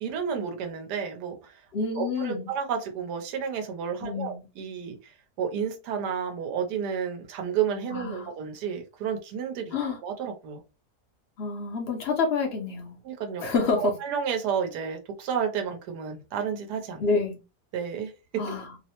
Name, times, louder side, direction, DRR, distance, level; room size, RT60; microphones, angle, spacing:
voice 1, 0.0-1.6 1.9-5.1 5.4-9.8 10.0-10.6 13.0-17.0 17.7-18.4, right 7 dB, 80° right, 1.3 m, -31 dB
voice 2, 1.7-2.5 4.0-4.5 7.9-8.3 9.7-10.0 11.4-13.0 13.4-13.9 17.0-17.4 18.4-18.8, left 4 dB, 60° left, 0.7 m, -28 dB
3.1 x 2.0 x 2.8 m
omnidirectional pair, 1.7 m